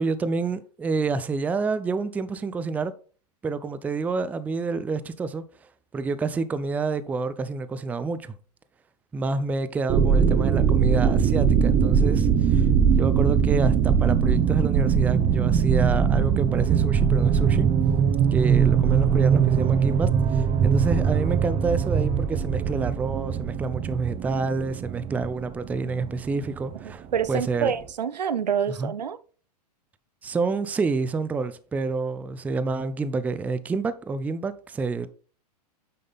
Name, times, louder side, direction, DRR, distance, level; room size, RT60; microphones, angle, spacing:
voice 1, 0.0-2.9 3.4-5.4 5.9-8.4 9.1-12.7 12.9-17.7 18.3-27.7 28.8-28.9 30.2-35.1, right 4 dB, 5° right, 0.4 m, -28 dB
sound 1, 9.9-27.3 27.6-27.7, right 7 dB, 25° right, 0.8 m, -21 dB
voice 2, 27.1-29.2, right 7 dB, 85° right, 0.7 m, -26 dB
9.2 x 3.7 x 3.9 m
hypercardioid pair, 115°, 21 cm